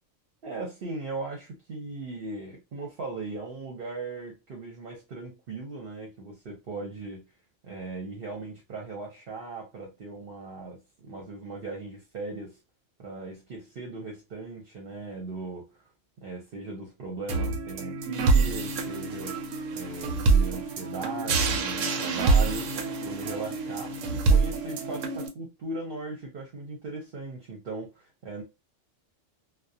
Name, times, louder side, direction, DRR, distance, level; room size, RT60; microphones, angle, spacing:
voice 1, 0.4-7.2 7.6-12.6 13.0-15.7 16.2-19.4 19.7-28.4, right 3 dB, 55° right, 0.9 m, -38 dB
sound 1, 17.3-25.3, right 4 dB, 85° right, 1.0 m, -26 dB
2.4 x 2.2 x 2.6 m
omnidirectional pair, 1.3 m